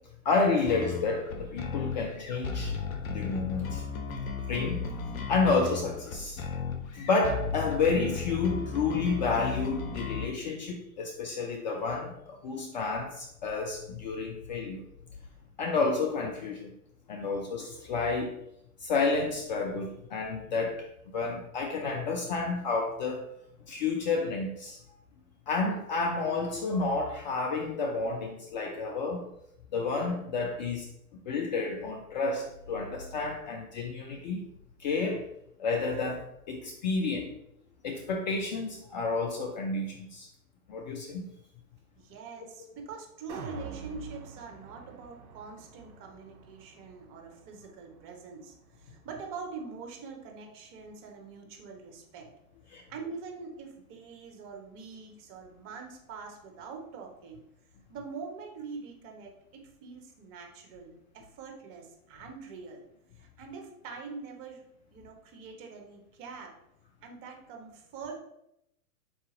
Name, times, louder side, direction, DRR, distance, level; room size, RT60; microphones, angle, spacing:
voice 1, 0.2-2.8 3.0-3.8 4.5-4.8 5.3-6.4 6.9-14.8 15.6-16.7 17.1-18.3 18.8-23.3 23.7-24.8 25.5-29.3 29.7-30.9 31.3-34.5 34.8-35.3 35.6-37.3 37.8-40.3 40.7-41.2 52.7-52.8, left 4 dB, 35° left, 2 dB, 0.4 m, -30 dB
sound 1, 0.7-10.3, left 5 dB, 70° left, 0.8 m, -35 dB
voice 2, 42.0-52.3 52.9-57.4 57.9-62.8 63.2-64.6 64.9-66.6 67.0-68.2, right 4 dB, 30° right, 2 dB, 0.8 m, -44 dB
sound 2, 43.3-49.5 49.9-50.0, right 5 dB, 55° right, 1.0 m, -47 dB
4.2 x 2.7 x 3.7 m, 0.78 s
hypercardioid pair, 115°, 43 cm